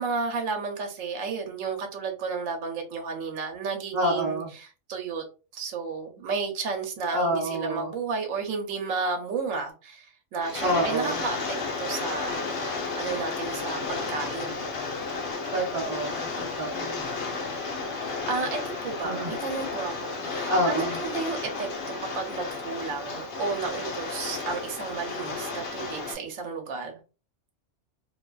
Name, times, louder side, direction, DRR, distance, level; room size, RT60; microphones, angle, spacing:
voice 1, 0.0-5.2 5.5-11.4 11.8-12.4 13.0-14.7 18.3-21.7 22.1-27.0, right 4 dB, 90° right, 1.0 m, -32 dB
voice 2, 3.9-4.5 7.1-7.9 10.6-11.2 15.5-17.0 19.0-19.3 20.5-21.0, equal, 40° right, 0.7 m, -27 dB
Rain, 10.4-26.1, left 4 dB, 55° left, 0.6 m, -33 dB
2.5 x 2.2 x 2.3 m
omnidirectional pair, 1.3 m